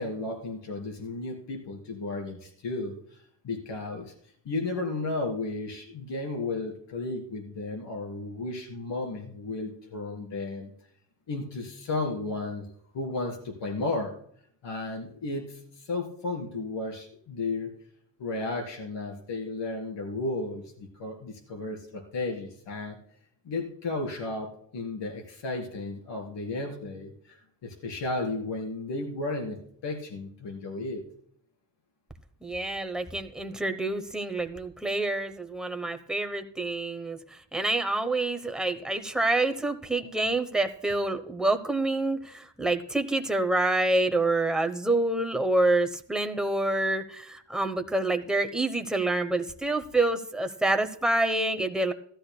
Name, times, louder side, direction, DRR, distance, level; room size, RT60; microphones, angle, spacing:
voice 1, 0.0-4.1 4.5-10.7 11.3-12.7 12.9-14.2 14.6-17.7 18.2-23.0 23.5-31.0, left 2 dB, 85° left, 2 dB, 3.6 m, -34 dB
voice 2, 32.4-37.2 37.5-51.9, right 2 dB, ahead, 6 dB, 0.9 m, -27 dB
17.0 x 13.0 x 2.2 m, 0.63 s
wide cardioid pair, 145°, 42 cm